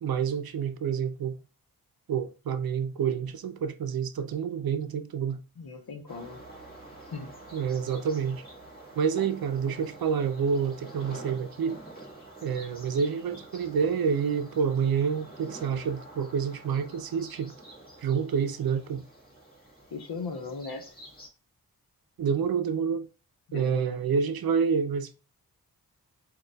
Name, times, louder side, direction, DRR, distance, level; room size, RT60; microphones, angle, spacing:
voice 1, 0.0-1.4 2.1-5.4 7.5-8.4 9.0-11.8 12.4-17.5 18.0-19.0 22.2-23.1 23.5-25.1, right 6 dB, 75° right, 0.6 m, -28 dB
voice 2, 5.6-6.4 7.1-7.3 9.2-9.3 19.9-20.8 23.5-24.0, left 4 dB, 80° left, 0.9 m, -38 dB
sound 1, 6.1-21.3, right 1 dB, 25° left, 1.6 m, -48 dB
6.4 x 2.4 x 2.3 m
wide cardioid pair, 95°, 36 cm